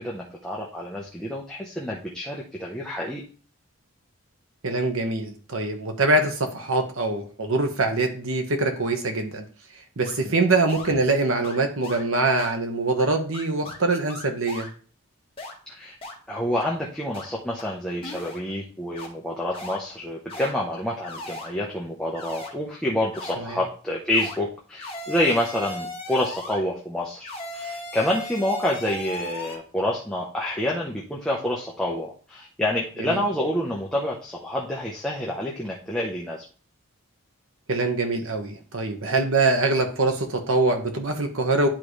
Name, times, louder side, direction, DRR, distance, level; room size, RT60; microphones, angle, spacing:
voice 1, 0.0-3.2 10.2-10.3 15.7-15.9 16.3-36.4, left 1 dB, 5° left, -4 dB, 0.8 m, -28 dB
voice 2, 4.6-9.4 10.0-14.7 23.4-23.6 33.0-33.2 37.7-41.7, right 2 dB, 65° right, 4 dB, 1.2 m, -24 dB
sound 1, 10.0-10.1 10.7-10.9 11.4-11.6 11.8-12.0 12.4-12.5 13.0-13.1 13.3-13.8 14.1-14.7 15.4-15.5 16.0-16.1 16.6-16.7 17.1-17.2 17.6-17.7 18.0-18.4 18.9-19.1 19.5-19.8 20.3-20.5 21.0-21.5 22.1-22.5 23.1-23.3 24.1-24.4 24.8-26.6 27.2-29.6, left 1 dB, 25° left, 1.6 m, -36 dB
10.5 x 3.8 x 3.2 m, 0.40 s
head